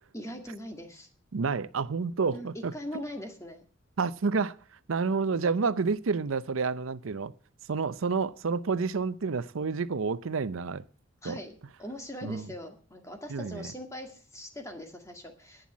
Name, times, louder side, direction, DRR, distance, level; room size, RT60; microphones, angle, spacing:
voice 1, 0.1-1.1 2.3-3.6 11.2-15.7, equal, 15° left, 1.9 m, -41 dB
voice 2, 1.3-3.0 4.0-4.6 4.9-7.3 7.7-10.8 11.2-11.4 12.2-12.5 13.3-13.7, right 4 dB, 80° right, 0.6 m, -29 dB
11.0 x 9.1 x 7.3 m
head